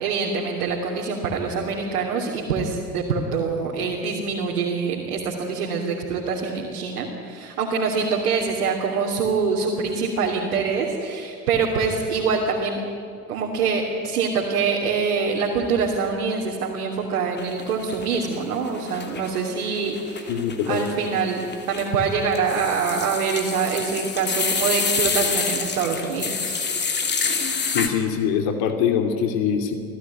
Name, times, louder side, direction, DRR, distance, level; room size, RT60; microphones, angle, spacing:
voice 1, 0.0-12.8 13.3-20.3 20.7-21.4 21.7-26.5, right 5 dB, 65° right, -2 dB, 3.2 m, -25 dB
sound 1, 17.4-18.4 18.7-27.9, left 5 dB, 25° left, 2.9 m, -27 dB
voice 2, 20.3-20.8 27.7-29.7, left 7 dB, 50° left, 5 dB, 2.8 m, -23 dB
26.5 x 16.0 x 9.4 m, 2.5 s
figure-of-eight pair, 75°, 46 cm